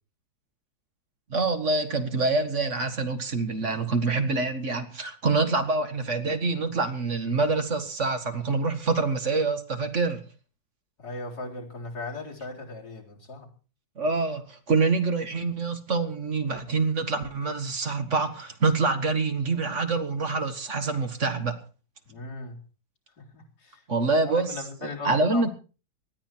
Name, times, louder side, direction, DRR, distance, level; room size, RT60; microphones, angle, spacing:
voice 1, 1.3-10.2 14.0-21.6 23.9-25.5, right 3 dB, 40° right, 1.9 m, -26 dB
voice 2, 11.0-13.5 22.1-22.6 23.2-23.8 24.2-25.5, left 3 dB, 55° left, 4.5 m, -38 dB
19.5 x 13.0 x 4.5 m
omnidirectional pair, 2.0 m